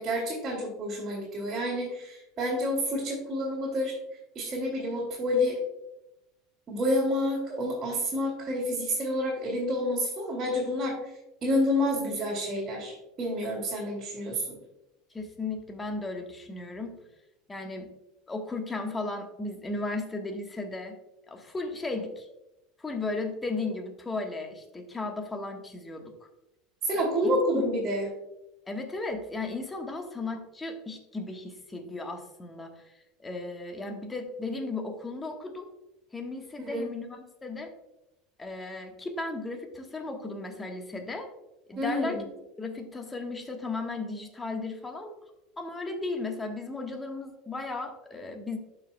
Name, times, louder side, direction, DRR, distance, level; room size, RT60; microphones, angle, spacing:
voice 1, 0.0-3.9 4.3-5.6 6.7-11.0 11.4-14.6 26.8-28.1 36.6-36.8 41.8-42.2, equal, 35° right, -5 dB, 2.2 m, -29 dB
voice 2, 15.1-17.0 17.5-17.9 18.3-21.0 21.3-22.3 22.8-26.1 26.9-27.7 28.7-35.7 36.1-37.7 38.4-41.3 41.7-42.2 42.6-45.1 45.6-48.6, left 3 dB, 15° left, 4 dB, 1.3 m, -35 dB
12.0 x 4.9 x 2.3 m, 0.91 s
hypercardioid pair, 80°, 0 cm